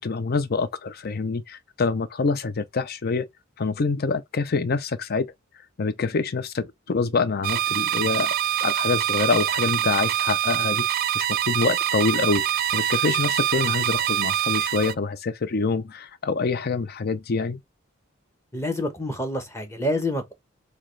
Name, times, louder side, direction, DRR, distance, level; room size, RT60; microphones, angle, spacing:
voice 1, 0.0-3.3 3.6-5.3 5.8-8.3 8.6-12.5 12.7-17.6, left 4 dB, 50° left, 0.5 m, -26 dB
sound 1, 7.4-14.9, right 11 dB, 50° right, 0.3 m, -24 dB
voice 2, 18.5-20.3, left 1 dB, 15° left, 1.0 m, -27 dB
6.2 x 2.3 x 3.2 m
head